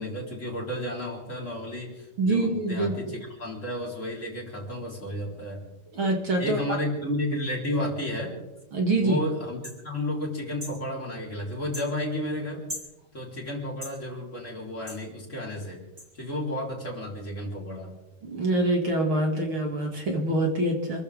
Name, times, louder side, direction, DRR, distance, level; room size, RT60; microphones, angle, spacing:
voice 1, 0.0-5.9 6.4-8.3 9.0-12.6 13.1-15.8 16.1-17.9, left 1 dB, 20° left, -2 dB, 3.9 m, -32 dB
voice 2, 2.2-2.9 5.9-6.6 8.7-9.2 18.2-21.0, right 2 dB, 40° right, 1 dB, 2.6 m, -25 dB
sound 1, 9.6-9.8 10.6-10.8 11.7-11.9 12.7-12.9 13.8-14.0 14.9-15.0 16.0-16.1, left 1 dB, 10° right, 5.5 m, -38 dB
28.0 x 14.0 x 3.6 m, 1.0 s
omnidirectional pair, 4.0 m